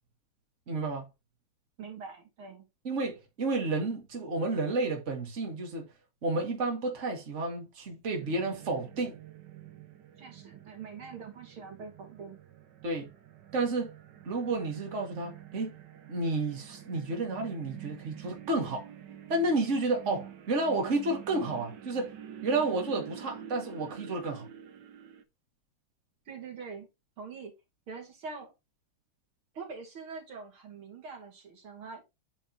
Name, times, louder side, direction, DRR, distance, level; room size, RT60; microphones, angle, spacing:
voice 1, 0.7-1.1 2.8-5.9 6.2-9.2 12.8-13.1 13.5-13.9 14.2-15.8 16.1-18.9 19.3-22.1 22.4-24.5, right 2 dB, 35° right, 2.2 m, -31 dB
voice 2, 1.8-2.7 10.2-12.4 26.3-26.9 27.2-27.5 27.9-28.5 29.5-32.0, right 5 dB, 85° right, 3.2 m, -44 dB
sound 1, 8.2-25.2, right 9 dB, 60° right, 1.6 m, -47 dB
9.0 x 4.1 x 4.1 m
omnidirectional pair, 2.2 m